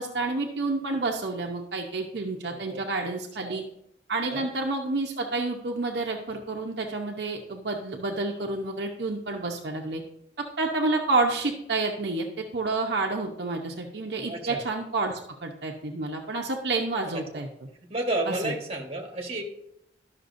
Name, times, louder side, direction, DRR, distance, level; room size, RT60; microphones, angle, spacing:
voice 1, 0.0-3.6 4.1-10.0 10.4-17.5 18.4-18.5, right 3 dB, 65° right, 0 dB, 0.8 m, -29 dB
voice 2, 2.5-2.8 3.4-3.6 4.3-4.5 14.3-14.6 17.1-17.4 17.9-19.4, right 1 dB, 35° right, 1 dB, 1.3 m, -32 dB
12.0 x 5.9 x 2.6 m, 0.76 s
head